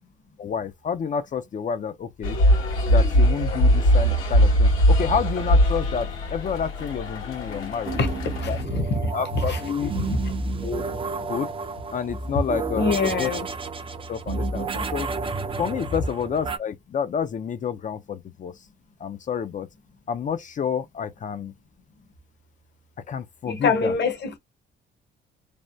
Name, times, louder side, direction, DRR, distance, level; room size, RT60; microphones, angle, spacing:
voice 1, 0.4-2.4 2.9-8.0 8.5-8.6 9.1-9.9 10.6-10.8 11.3-11.5 11.9-13.3 14.1-15.1 15.6-18.7 19.0-19.7 20.1-21.5 23.1-24.0, left 7 dB, 40° left, 0.4 m, -29 dB
sound 1, 2.2-8.6, equal, 85° left, 1.7 m, -21 dB
sound 2, 7.9-16.6, right 3 dB, 25° right, 0.4 m, -31 dB
voice 2, 8.4-9.1 9.5-10.2 12.7-13.5 23.4-24.4, left 4 dB, 60° left, 1.0 m, -25 dB
3.2 x 2.1 x 2.6 m
cardioid pair, 90°, 20 cm